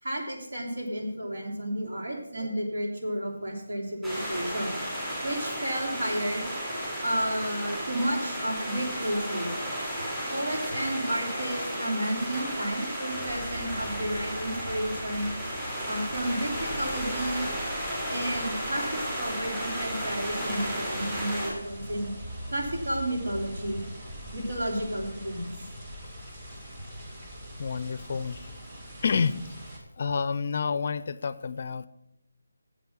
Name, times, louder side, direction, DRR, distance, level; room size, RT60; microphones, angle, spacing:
voice 1, 0.0-4.8 5.2-6.4 7.0-9.5 10.3-15.3 15.9-17.5 18.1-22.1 22.5-23.8 24.3-25.7, right 1 dB, 75° right, 0 dB, 3.1 m, -32 dB
sound 1, 4.0-21.5, equal, 10° right, 3.5 m, -33 dB
sound 2, 13.1-28.7, equal, 45° right, 3.5 m, -44 dB
sound 3, 19.5-29.8, equal, 30° right, 2.1 m, -45 dB
voice 2, 27.6-28.5 29.0-29.3 30.0-31.9, left 5 dB, 40° left, 15 dB, 0.4 m, -29 dB
8.0 x 7.6 x 7.2 m, 0.88 s
figure-of-eight pair, 170°, 0 cm